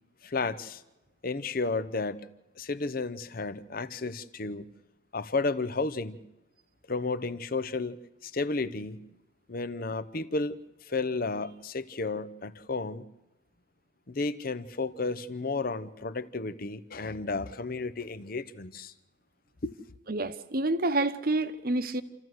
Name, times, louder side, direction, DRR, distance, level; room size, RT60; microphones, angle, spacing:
voice 1, 0.2-0.8 1.2-2.3 2.6-4.6 5.1-6.2 6.9-8.0 8.2-9.0 9.5-13.1 14.1-18.9 19.6-19.7, left 3 dB, 45° left, 15 dB, 0.7 m, -32 dB
voice 2, 20.1-22.0, right 2 dB, 45° right, 12 dB, 0.9 m, -28 dB
27.5 x 14.0 x 7.8 m, 1.0 s
head